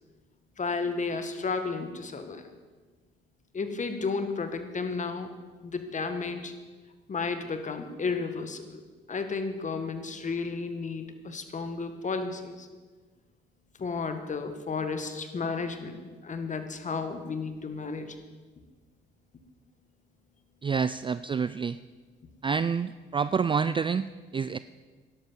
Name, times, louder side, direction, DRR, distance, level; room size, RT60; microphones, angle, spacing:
voice 1, 0.6-2.5 3.5-5.3 5.6-6.5 7.1-8.8 9.1-12.7 13.8-18.1, left 4 dB, 40° left, 8 dB, 1.7 m, -33 dB
voice 2, 20.6-21.8 22.4-24.6, right 6 dB, 25° right, 14 dB, 0.3 m, -28 dB
12.0 x 11.0 x 7.3 m, 1.4 s
cardioid pair, 90°, 20 cm